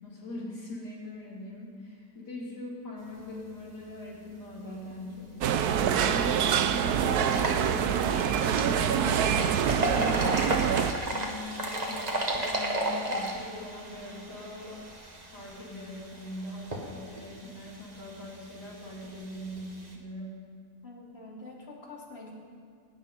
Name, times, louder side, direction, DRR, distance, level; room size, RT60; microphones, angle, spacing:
voice 1, 0.0-10.4 11.0-14.8 15.3-20.4, left 1 dB, 85° left, -5 dB, 4.2 m, -41 dB
sound 1, 5.4-10.9, right 8 dB, 75° right, 1.2 m, -25 dB
sound 2, 7.3-19.9, right 1 dB, 25° right, 1.6 m, -35 dB
voice 2, 20.8-22.3, left 2 dB, 40° left, -3 dB, 2.9 m, -46 dB
19.0 x 6.7 x 9.5 m, 2.2 s
omnidirectional pair, 1.7 m